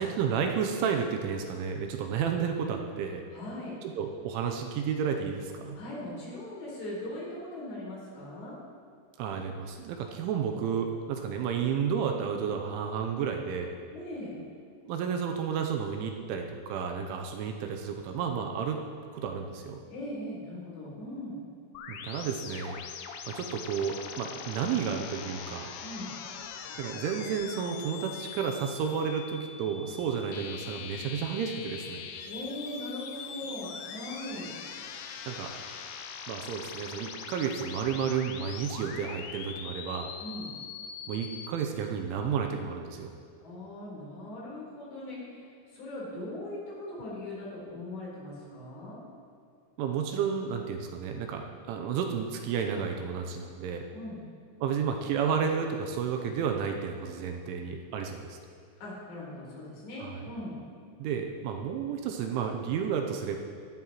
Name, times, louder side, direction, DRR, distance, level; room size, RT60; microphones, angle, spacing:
voice 1, 0.0-3.2 4.0-5.8 9.2-13.8 14.8-18.8 19.1-19.8 21.9-22.8 23.3-25.7 26.8-32.1 35.2-35.5 36.3-40.1 41.1-43.1 49.8-53.9 54.6-58.4 60.0-60.2 61.0-63.4, right 7 dB, 80° right, 3 dB, 3.1 m, -31 dB
voice 2, 3.3-3.7 5.7-8.6 13.9-14.4 19.9-21.3 25.8-26.1 32.3-34.5 40.2-40.5 43.4-49.0 53.9-54.2 58.8-60.5, left 1 dB, 55° left, -6 dB, 6.0 m, -40 dB
sound 1, 21.8-41.5, left 7 dB, 85° left, 3.4 m, -42 dB
16.5 x 13.5 x 3.1 m, 2.4 s
omnidirectional pair, 5.8 m